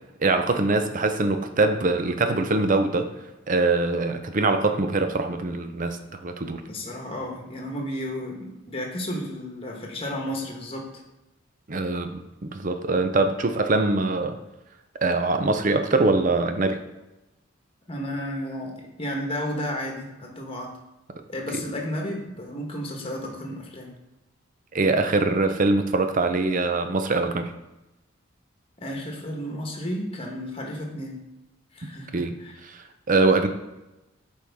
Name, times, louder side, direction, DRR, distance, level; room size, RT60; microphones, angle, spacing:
voice 1, 0.2-3.1 3.5-6.6 11.7-14.4 15.0-16.8 24.7-27.5 32.1-32.3 32.6-33.5, right 3 dB, 40° right, 8 dB, 0.6 m, -23 dB
voice 2, 6.6-10.9 17.9-18.7 19.0-20.7 21.3-23.9 28.8-31.2 31.7-32.5, equal, 30° left, 0 dB, 1.2 m, -32 dB
8.4 x 4.7 x 3.5 m, 0.98 s
head